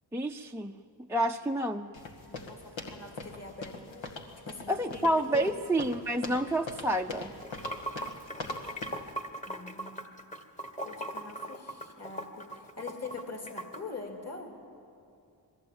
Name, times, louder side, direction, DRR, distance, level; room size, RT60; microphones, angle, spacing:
voice 1, 0.1-0.7 1.1-1.9 4.7-7.3, right 1 dB, 5° right, 2 dB, 0.6 m, -29 dB
sound 1, 1.9-9.1, left 3 dB, 75° left, 2.0 m, -42 dB
voice 2, 2.3-5.6 9.5-10.1 10.8-14.6, left 4 dB, 35° left, 3 dB, 2.9 m, -44 dB
Water / Sink (filling or washing), 7.3-13.8, right 1 dB, 15° left, 1.5 m, -39 dB
21.0 x 15.0 x 8.8 m, 2.5 s
cardioid pair, 45°, 46 cm